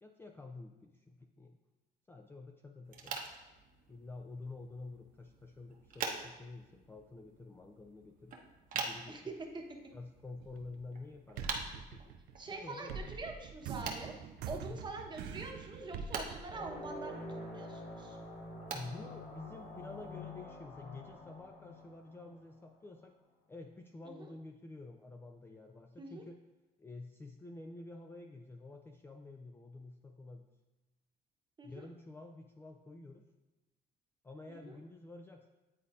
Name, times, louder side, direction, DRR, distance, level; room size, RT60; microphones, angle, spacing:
voice 1, 0.0-1.6 2.1-3.3 3.9-8.4 8.7-9.2 9.9-12.1 12.5-13.2 14.6-14.8 18.7-23.1 23.5-26.4 26.8-30.5 31.6-33.3 34.2-35.5, left 3 dB, 15° left, 3 dB, 0.4 m, -49 dB
sound 1, 2.8-20.1, right 4 dB, 55° right, 0.9 m, -47 dB
voice 2, 9.1-9.5 12.4-14.1 14.5-17.3 17.5-18.2 24.0-24.3 26.0-26.2 31.6-31.9 34.5-34.8, right 3 dB, 25° right, 1 dB, 1.0 m, -45 dB
sound 2, 10.4-11.0 11.4-17.2, right 6 dB, 85° right, 0.4 m, -45 dB
sound 3, 16.5-22.6, left 1 dB, 65° left, 1.7 m, -47 dB
9.7 x 4.0 x 2.5 m, 1.1 s
cardioid pair, 110°, 17 cm